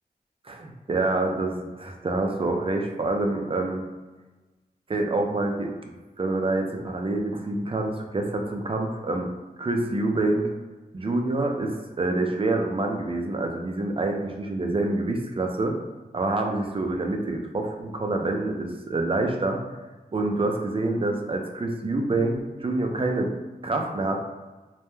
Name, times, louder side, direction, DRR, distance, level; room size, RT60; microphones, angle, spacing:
voice 1, 0.4-3.8 4.9-5.7 6.2-9.3 9.6-10.5 10.9-15.8 16.1-19.6 20.1-23.3 23.6-24.2, right 2 dB, 35° right, 2 dB, 0.4 m, -26 dB
2.2 x 2.1 x 3.0 m, 1.2 s
wide cardioid pair, 65°, 16 cm